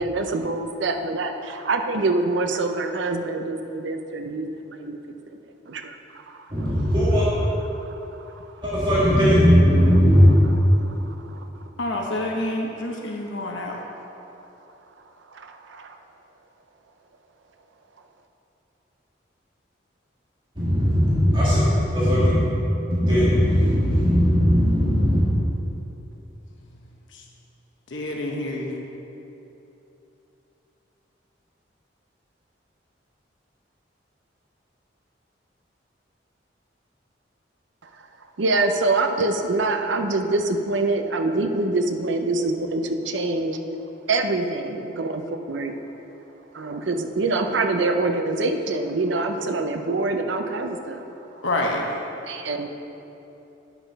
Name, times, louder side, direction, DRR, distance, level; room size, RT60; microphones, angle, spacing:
voice 1, 0.0-5.0 5.7-6.5 7.7-8.0 8.2-8.5 10.8-11.7 15.3-16.0 38.0-38.1 38.4-43.6 44.1-45.7 46.5-51.0 52.3-52.7, right 2 dB, 80° right, 5 dB, 0.6 m, -25 dB
voice 2, 6.5-7.3 8.6-10.3 20.6-21.6 21.9-22.4 22.9-25.2, equal, 25° right, -10 dB, 1.7 m, -18 dB
voice 3, 11.8-13.8 27.1-27.2 27.9-28.8 51.4-52.0, left 1 dB, 90° left, 0 dB, 1.0 m, -27 dB
9.2 x 6.1 x 5.3 m, 3.0 s
head